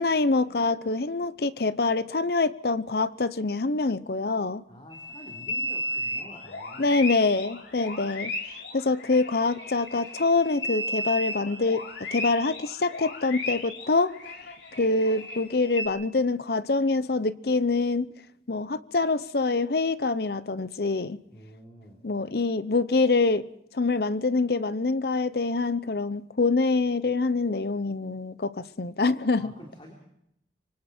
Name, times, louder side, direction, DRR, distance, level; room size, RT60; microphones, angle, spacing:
voice 1, 0.0-4.6 6.8-8.3 8.7-11.8 12.1-14.1 14.8-18.1 18.5-21.2 22.0-23.5 23.7-29.5, left 3 dB, 60° left, 0.7 m, -25 dB
voice 2, 4.7-7.0 21.2-22.0 29.4-29.9, equal, 30° left, 3.4 m, -48 dB
sound 1, 4.9-15.9, left 1 dB, 90° left, 3.2 m, -35 dB
26.0 x 24.5 x 4.4 m
head